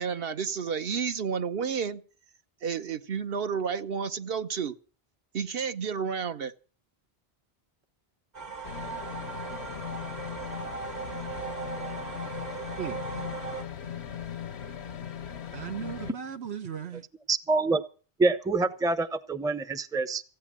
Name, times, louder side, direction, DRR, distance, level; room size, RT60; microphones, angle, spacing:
voice 1, 0.0-2.0 2.6-4.7 5.3-6.5, right 6 dB, 65° right, 1.1 m, -31 dB
sound 1, 8.4-13.6, right 6 dB, 45° right, 1.2 m, -38 dB
sound 2, 8.6-16.1, left 9 dB, 85° left, 1.1 m, -39 dB
voice 2, 12.8-13.3 15.5-17.0, right 8 dB, 90° right, 1.4 m, -37 dB
voice 3, 17.3-17.8 18.2-20.2, right 3 dB, 5° right, 0.5 m, -26 dB
15.5 x 9.0 x 7.4 m
omnidirectional pair, 1.1 m